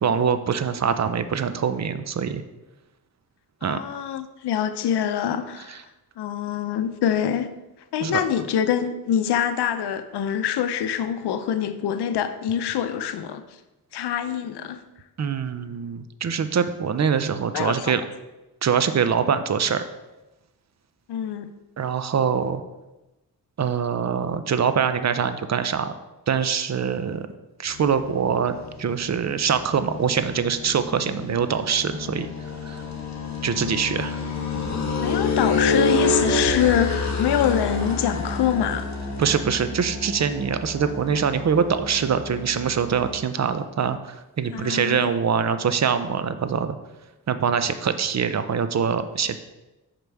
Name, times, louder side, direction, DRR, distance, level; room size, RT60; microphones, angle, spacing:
voice 1, 0.0-2.4 3.6-3.8 8.0-8.2 15.2-18.0 18.6-19.8 21.8-22.6 23.6-25.9 26.3-27.3 27.6-32.3 32.7-32.8 33.4-34.2 39.2-44.0 44.4-46.8 47.3-49.4, right 7 dB, 45° right, 11 dB, 0.5 m, -24 dB
voice 2, 3.6-5.8 6.2-7.5 7.9-13.4 13.9-14.8 17.5-17.9 21.1-21.5 35.0-38.9 44.5-45.1, left 9 dB, 90° left, 10 dB, 0.6 m, -25 dB
sound 1, 27.7-43.2, left 3 dB, 45° left, 1.3 m, -28 dB
5.8 x 5.2 x 4.6 m, 1.0 s
cardioid pair, 85°, 39 cm